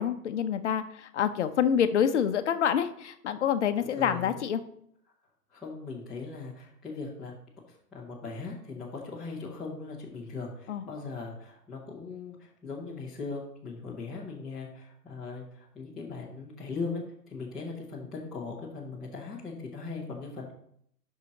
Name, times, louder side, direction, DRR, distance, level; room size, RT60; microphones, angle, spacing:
voice 1, 0.0-4.6 10.7-10.8, left 8 dB, 50° left, 10 dB, 0.6 m, -27 dB
voice 2, 3.8-4.4 5.5-7.3 7.7-20.5, left 4 dB, ahead, -11 dB, 0.5 m, -39 dB
6.6 x 5.6 x 4.9 m, 0.69 s
hypercardioid pair, 135°, 48 cm